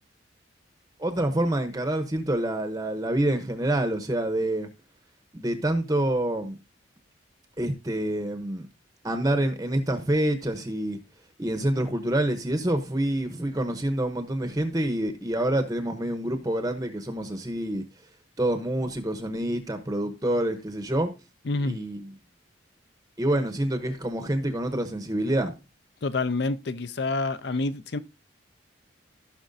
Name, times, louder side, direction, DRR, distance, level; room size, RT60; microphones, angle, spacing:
voice 1, 1.0-4.7 5.3-6.6 7.6-8.7 9.0-11.0 11.4-17.8 18.4-21.1 21.6-22.1 23.2-25.6, right 1 dB, 20° right, 0.7 m, -27 dB
voice 2, 21.5-21.8 26.0-28.0, left 3 dB, 55° left, 0.5 m, -28 dB
15.5 x 5.9 x 2.6 m
head